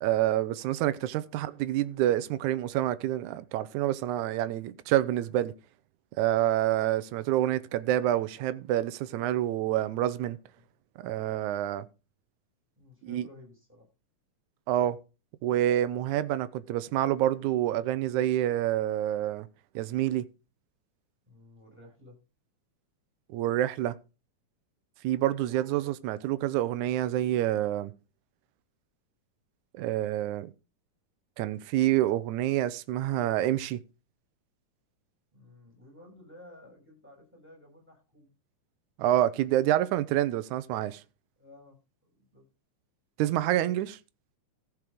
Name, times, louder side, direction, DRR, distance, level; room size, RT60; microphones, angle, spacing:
voice 1, 0.0-5.5 6.2-10.4 11.0-11.9 13.0-13.3 14.7-15.0 15.4-19.5 19.8-20.3 23.3-24.0 25.0-27.9 29.7-30.5 31.4-33.8 39.0-41.0 43.2-44.0, right 13 dB, 80° right, 2.1 m, -27 dB
voice 2, 12.8-13.9 21.3-22.2 25.4-25.6 35.3-38.3 41.4-41.8 42.1-42.4, left 2 dB, 5° right, 6.8 m, -54 dB
14.5 x 6.1 x 5.0 m
omnidirectional pair, 3.5 m